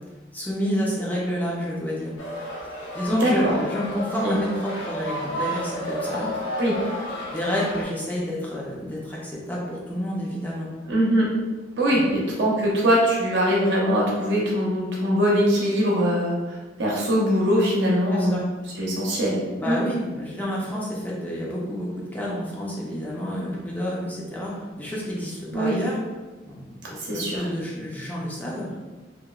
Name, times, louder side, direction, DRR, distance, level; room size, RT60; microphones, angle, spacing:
voice 1, 0.3-2.1 2.9-6.3 7.3-10.7 11.9-12.0 18.1-18.4 19.6-26.0 26.5-28.7, equal, 10° left, -5 dB, 0.4 m, -29 dB
sound 1, 2.2-7.8, equal, 85° left, 0.6 m, -32 dB
voice 2, 3.2-3.5 4.2-4.4 6.6-7.0 10.9-11.3 11.8-18.4 18.8-19.4 19.7-19.8 25.5-25.7 27.0-27.4, equal, 70° right, -4 dB, 0.7 m, -22 dB
2.8 x 2.1 x 2.3 m, 1.2 s
head